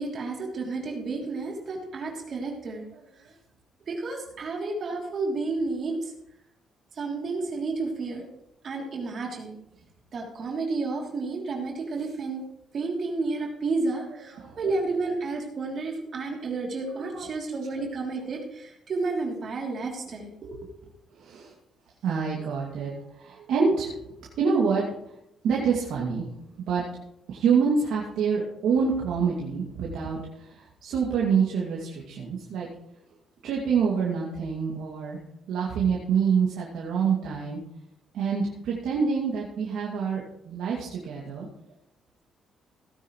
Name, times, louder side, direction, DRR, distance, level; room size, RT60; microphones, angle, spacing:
voice 1, 0.0-2.9 3.9-6.1 7.0-8.3 8.6-9.6 10.1-12.4 12.7-20.7, right 3 dB, 55° right, 0 dB, 3.2 m, -31 dB
voice 2, 14.3-14.6 16.9-17.3 21.1-21.5 22.0-24.0 24.4-24.8 25.4-26.3 26.6-26.8 27.3-32.7 33.4-35.2 35.5-37.6 38.1-41.5, right 6 dB, 80° right, -4 dB, 2.4 m, -26 dB
17.5 x 9.9 x 3.2 m, 0.81 s
cardioid pair, 90°, 0 cm